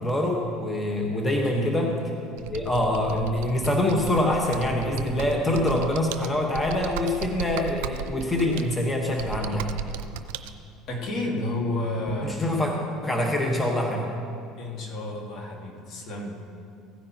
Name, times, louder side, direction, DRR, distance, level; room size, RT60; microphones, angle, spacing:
voice 1, 0.0-1.9 2.4-9.7 12.2-12.7 13.0-14.1, left 1 dB, 15° left, 0 dB, 1.2 m, -25 dB
Computer keyboard, 2.4-10.5, right 8 dB, 80° right, 0.5 m, -36 dB
voice 2, 10.9-12.4 14.6-16.4, left 1 dB, 55° left, 0 dB, 1.9 m, -31 dB
16.0 x 9.7 x 2.9 m, 2.4 s
supercardioid pair, 90°, 0 cm